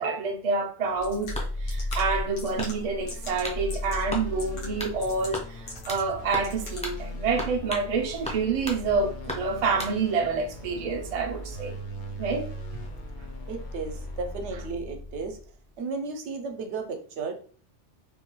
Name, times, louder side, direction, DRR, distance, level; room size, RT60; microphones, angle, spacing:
voice 1, 0.0-11.8 12.2-12.5, right 4 dB, 50° right, 0.4 m, -28 dB
sound 1, 0.8-7.0, left 2 dB, 85° left, 1.3 m, -44 dB
sound 2, 0.9-15.5, left 1 dB, 65° left, 1.0 m, -37 dB
sound 3, 1.3-2.1 2.6-3.0 3.4-3.6 4.1-4.3 4.8-5.0 5.3-6.1 6.3-6.5 6.8-7.0 7.4-7.9 8.2-8.8 9.3-10.0, left 1 dB, 10° left, 0.4 m, -36 dB
voice 2, 13.5-15.4 15.8-17.3, right 4 dB, 70° right, 0.9 m, -34 dB
3.5 x 2.2 x 3.0 m
omnidirectional pair, 1.2 m